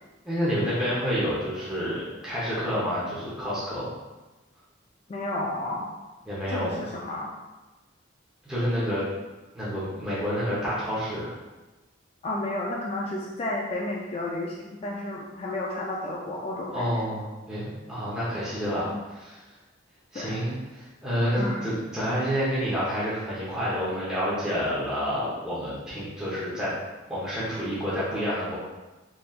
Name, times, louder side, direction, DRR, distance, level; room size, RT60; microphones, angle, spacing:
voice 1, 0.2-3.9 6.3-6.8 8.4-9.0 9.5-11.4 16.7-19.4 20.1-26.7 27.1-28.6, equal, 5° right, -10 dB, 0.9 m, -29 dB
voice 2, 5.1-5.9 6.5-7.3 12.2-17.0 18.9-19.0 20.1-20.4 21.4-21.6, left 1 dB, 30° left, -3 dB, 0.3 m, -32 dB
4.0 x 3.2 x 2.4 m, 1.2 s
head